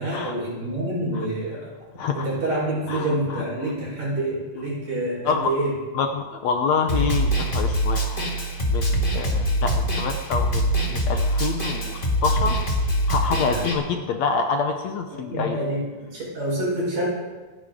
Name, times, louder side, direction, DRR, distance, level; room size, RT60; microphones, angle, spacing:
voice 1, 0.0-1.7 2.1-5.7 13.4-13.7 15.3-17.0, right 1 dB, 55° right, -4 dB, 6.1 m, -27 dB
voice 2, 1.9-2.3 2.9-3.4 5.3-5.6 5.9-8.3 8.7-12.6 13.1-15.6, left 5 dB, 70° left, 5 dB, 2.0 m, -27 dB
Snare drum, 6.9-13.7, equal, 25° left, 1.4 m, -23 dB
27.0 x 10.5 x 3.8 m, 1.3 s
omnidirectional pair, 3.7 m